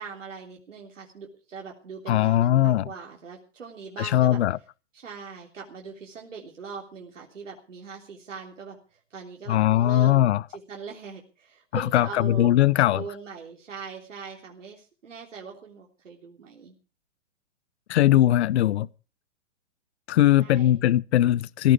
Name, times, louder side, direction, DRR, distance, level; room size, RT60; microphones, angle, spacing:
voice 1, 0.0-4.4 4.9-16.7 20.4-20.8, right 5 dB, 85° right, 3.4 m, -41 dB
voice 2, 2.1-2.9 4.0-4.6 9.5-10.4 11.7-13.0 17.9-18.9 20.1-21.7, left 13 dB, 65° left, 0.7 m, -20 dB
16.0 x 14.5 x 5.0 m
hypercardioid pair, 130°, 37 cm